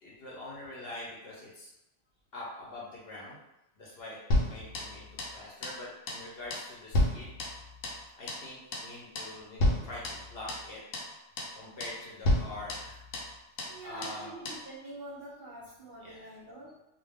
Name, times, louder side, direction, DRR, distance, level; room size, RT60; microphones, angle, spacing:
voice 1, 0.0-1.7 2.3-3.4 3.8-7.3 8.1-10.8 11.5-13.0 13.8-14.3 16.0-16.3, left 2 dB, 60° left, -5 dB, 0.8 m, -44 dB
sound 1, 4.3-5.4 5.6-5.8 6.1-6.3 6.5-8.0 8.3-8.5 8.7-8.9 9.2-9.3 9.6-10.7 10.9-11.1 11.4-11.6 11.8-12.0 12.2-13.3 13.6-13.8 14.0-14.2 14.5-14.6, left 1 dB, 85° left, 0.9 m, -31 dB
voice 2, 13.6-16.8, right 2 dB, 50° right, -6 dB, 0.7 m, -46 dB
2.2 x 2.1 x 3.4 m, 0.91 s
omnidirectional pair, 1.3 m